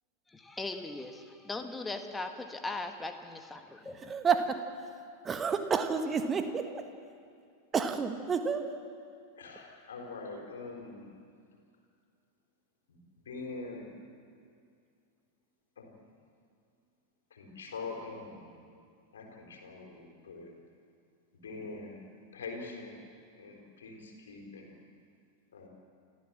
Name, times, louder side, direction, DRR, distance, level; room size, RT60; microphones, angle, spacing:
voice 1, 0.3-3.9, left 2 dB, 10° left, 6 dB, 1.6 m, -39 dB
voice 2, 3.8-6.9 7.7-8.8, right 5 dB, 20° right, 8 dB, 1.5 m, -31 dB
voice 3, 9.4-11.1 12.9-13.0 13.2-13.9 15.8-16.0 17.3-18.6 19.1-20.5 21.4-22.0 22.3-23.0 23.3-24.8 25.5-25.7, left 3 dB, 65° left, 1 dB, 4.1 m, -43 dB
28.5 x 14.5 x 7.4 m, 2.3 s
figure-of-eight pair, 90°, 0 cm